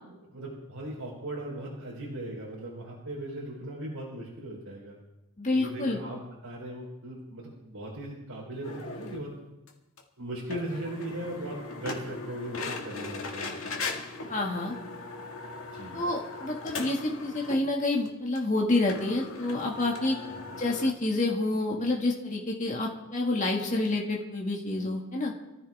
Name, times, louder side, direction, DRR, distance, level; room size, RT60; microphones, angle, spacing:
voice 1, 0.1-5.0 5.5-9.4 10.2-13.7 15.7-16.1 20.3-20.4, right 1 dB, 75° right, -4 dB, 4.1 m, -38 dB
voice 2, 5.4-6.0 14.3-14.7 15.9-20.2 20.6-25.3, left 2 dB, 35° left, -1 dB, 2.0 m, -28 dB
sound 1, 8.6-9.2 9.7-9.8 10.0-10.1 10.5-17.7 18.1-18.2 18.4-18.5 18.9-20.9, left 3 dB, 65° left, 2.0 m, -39 dB
25.5 x 14.5 x 3.6 m, 0.98 s
head